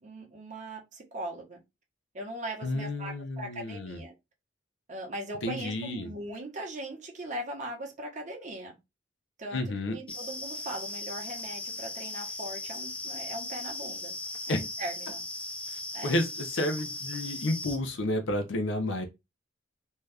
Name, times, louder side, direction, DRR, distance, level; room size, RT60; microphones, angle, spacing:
voice 1, 0.0-1.6 2.1-4.1 4.9-8.8 9.4-14.1 14.5-15.2 15.9-16.1, right 1 dB, 40° right, 0.8 m, -39 dB
voice 2, 2.6-4.0 5.4-6.1 9.5-10.0 14.5-14.6 16.0-19.1, left 1 dB, 80° left, 0.6 m, -31 dB
sound 1, 10.1-17.8, left 2 dB, 5° left, 0.4 m, -38 dB
2.7 x 2.3 x 3.3 m
head